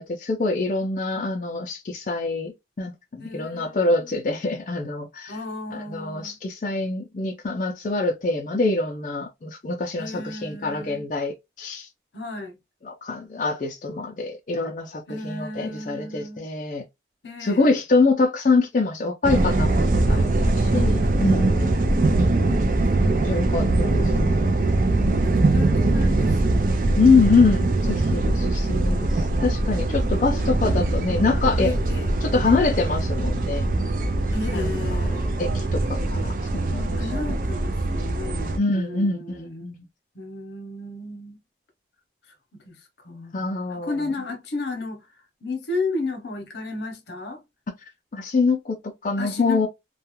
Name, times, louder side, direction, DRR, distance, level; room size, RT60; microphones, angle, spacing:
voice 1, 0.0-5.3 5.7-11.9 12.9-16.8 17.4-21.6 23.0-23.9 27.0-29.1 29.4-31.7 32.2-33.7 34.5-35.0 35.4-37.0 38.6-39.8 43.3-43.9 48.1-49.7, left 3 dB, 45° left, 0.4 m, -24 dB
voice 2, 3.2-4.1 5.3-6.4 10.0-11.1 12.1-12.6 15.1-16.5 17.2-17.8 20.0-20.3 21.0-23.3 23.8-24.8 25.3-27.6 28.6-29.3 30.2-30.3 31.6-32.1 34.3-35.4 36.9-39.7 40.1-41.4 42.5-43.3 43.7-45.1 45.4-47.4 49.2-49.7, left 2 dB, 80° left, 0.8 m, -34 dB
sound 1, 19.2-38.6, right 2 dB, 50° right, 0.4 m, -22 dB
2.3 x 2.1 x 2.9 m
head